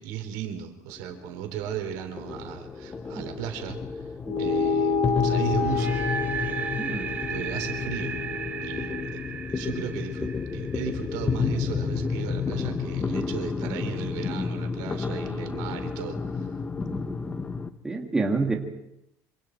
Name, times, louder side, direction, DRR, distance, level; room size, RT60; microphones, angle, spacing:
voice 1, 0.0-4.1 4.4-6.0 7.3-8.2 8.6-9.2 9.5-16.5, right 9 dB, 90° right, 6 dB, 3.4 m, -36 dB
sound 1, 0.9-17.7, left 5 dB, 15° left, 0.8 m, -31 dB
sound 2, 4.3-9.1, left 5 dB, 55° left, 1.9 m, -29 dB
sound 3, 5.6-11.6, right 7 dB, 25° right, 1.9 m, -35 dB
voice 2, 6.8-7.1 16.9-17.3 17.8-18.6, right 3 dB, 10° right, 2 dB, 2.1 m, -28 dB
26.0 x 25.5 x 4.5 m, 0.82 s
cardioid pair, 170°, 7 cm